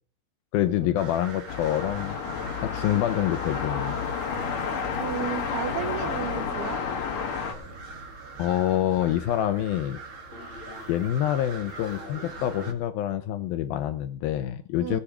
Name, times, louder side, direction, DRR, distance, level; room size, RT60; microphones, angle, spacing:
voice 1, 0.5-2.2 2.6-4.0 8.4-10.0 10.9-15.0, left 12 dB, 75° left, 11 dB, 2.3 m, -26 dB
sound 1, 1.0-12.7, right 3 dB, 40° right, 2.4 m, -42 dB
sound 2, 1.5-7.5, left 6 dB, 60° left, 3.2 m, -31 dB
sound 3, 4.3-8.5 10.3-11.2 11.6-12.7, left 2 dB, 35° left, 1.3 m, -45 dB
voice 2, 5.0-6.8 14.8-15.0, right 11 dB, 75° right, 10 dB, 3.0 m, -33 dB
19.0 x 8.5 x 4.9 m, 0.40 s
omnidirectional pair, 4.8 m